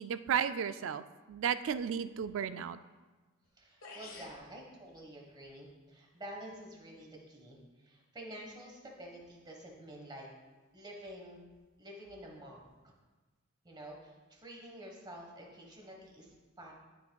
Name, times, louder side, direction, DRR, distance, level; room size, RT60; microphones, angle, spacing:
voice 1, 0.0-2.8, right 8 dB, 65° right, 12 dB, 0.3 m, -34 dB
sound 1, 3.4-3.5 3.8-4.4, left 3 dB, 85° left, 1.3 m, -48 dB
voice 2, 3.6-10.3 10.7-11.4 11.8-12.9 13.6-16.7, right 1 dB, 20° right, -1 dB, 1.3 m, -49 dB
12.0 x 6.0 x 2.3 m, 1.2 s
head